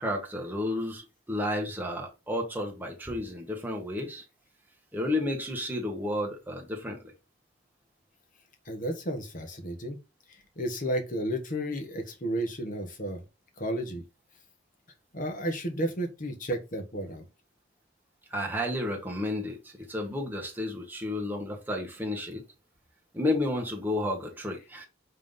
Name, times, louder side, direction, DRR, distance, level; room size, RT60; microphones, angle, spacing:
voice 1, 0.0-4.2 4.9-7.1 18.3-22.4 23.1-24.9, left 1 dB, 10° right, 1.6 m, -32 dB
voice 2, 8.6-10.0 10.6-13.2 13.6-14.0 15.1-17.2, right 1 dB, 45° left, 1.5 m, -32 dB
5.6 x 3.7 x 5.5 m
head